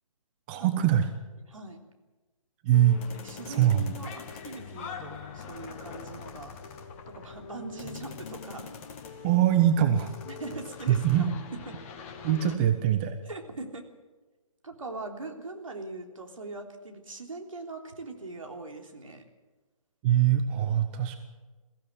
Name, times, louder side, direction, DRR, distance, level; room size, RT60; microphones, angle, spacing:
voice 1, 0.5-1.1 2.6-3.0 3.5-3.8 9.2-10.1 10.9-11.3 12.2-13.2 20.0-21.2, right 11 dB, 20° right, 8 dB, 0.9 m, -23 dB
voice 2, 1.5-1.8 3.2-6.6 7.1-8.7 10.2-11.8 13.2-13.8 14.6-19.3, right 3 dB, 65° right, 2 dB, 3.5 m, -41 dB
sound 1, 2.7-12.5, left 6 dB, 25° left, 1.7 m, -43 dB
22.0 x 15.5 x 8.0 m, 1.2 s
figure-of-eight pair, 140°, 18 cm